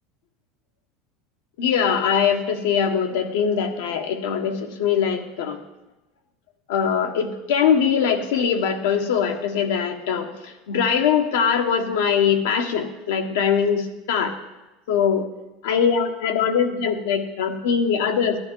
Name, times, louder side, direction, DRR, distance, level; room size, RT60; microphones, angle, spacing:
voice 1, 1.6-5.6 6.7-14.3 14.9-15.2 15.6-18.4, left 7 dB, 85° left, 5 dB, 1.4 m, -22 dB
14.0 x 10.5 x 4.7 m, 1.0 s
supercardioid pair, 125°, 0 cm